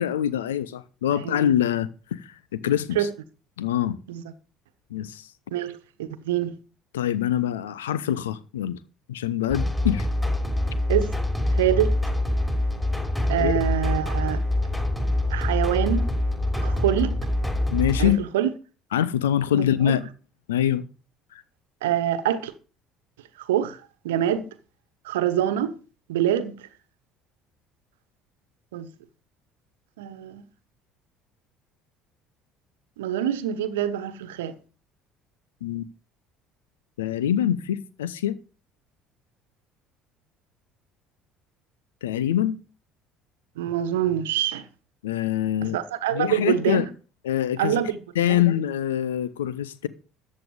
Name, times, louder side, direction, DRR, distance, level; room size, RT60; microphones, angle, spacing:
voice 1, 0.0-3.1 3.6-4.0 4.9-5.3 6.9-8.8 9.1-10.1 13.4-13.5 17.7-18.2 18.9-20.0 20.5-20.8 21.3-21.4 35.6-35.9 37.0-38.4 42.0-42.6 45.0-45.8 46.1-46.9 47.2-47.8 48.1-49.9, left 10 dB, 70° left, 0.9 m, -24 dB
voice 2, 5.5-6.5 10.9-11.1 11.5-11.9 13.3-14.4 15.3-16.1 16.6-17.2 18.0-18.5 19.5-20.0 21.8-22.5 23.5-23.8 24.0-24.5 25.0-25.7 26.1-26.7 28.7-28.9 30.0-30.4 33.0-34.5 43.6-44.7 45.6-46.8 47.6-48.0 48.3-48.4, right 11 dB, 70° right, 1.2 m, -25 dB
sound 1, 9.5-18.1, left 1 dB, 10° left, 6.1 m, -25 dB
14.0 x 9.1 x 5.3 m
figure-of-eight pair, 55°, 0 cm